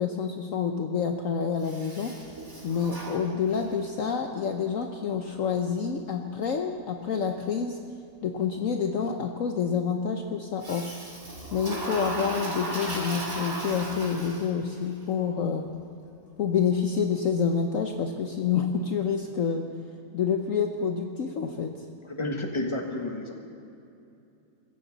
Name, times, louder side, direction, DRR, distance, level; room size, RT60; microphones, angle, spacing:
voice 1, 0.0-2.2 2.6-7.8 8.2-10.9 11.5-15.7 16.4-19.7 20.1-21.8, left 6 dB, 60° left, 4 dB, 1.1 m, -28 dB
Toilet flush, 1.6-3.8 10.6-14.7, right 1 dB, 45° right, 2.9 m, -36 dB
voice 2, 22.0-23.3, left 2 dB, 20° left, 2 dB, 1.5 m, -31 dB
23.0 x 15.0 x 4.1 m, 2.7 s
omnidirectional pair, 1.6 m